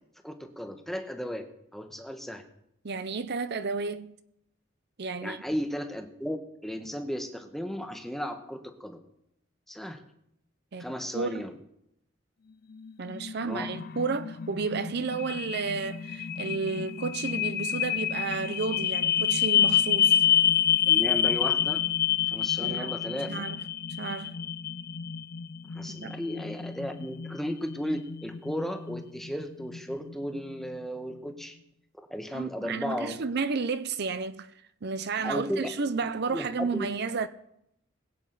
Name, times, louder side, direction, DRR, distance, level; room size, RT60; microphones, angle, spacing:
voice 1, 0.2-1.5 1.7-2.4 5.2-6.4 6.6-9.0 9.7-10.0 10.8-11.5 13.4-13.7 20.9-21.8 22.3-23.4 25.7-31.6 32.1-33.2 35.2-35.7 36.3-36.5 36.7-36.9, equal, ahead, 1.1 m, -35 dB
voice 2, 2.8-4.2 5.0-5.4 10.7-10.9 11.1-11.5 13.0-20.2 22.6-23.6 24.0-24.4 25.9-26.2 32.3-34.5 34.8-37.3, right 4 dB, 55° right, 0.6 m, -32 dB
sound 1, 12.7-30.8, left 9 dB, 50° left, 0.4 m, -28 dB
21.5 x 8.3 x 4.0 m
head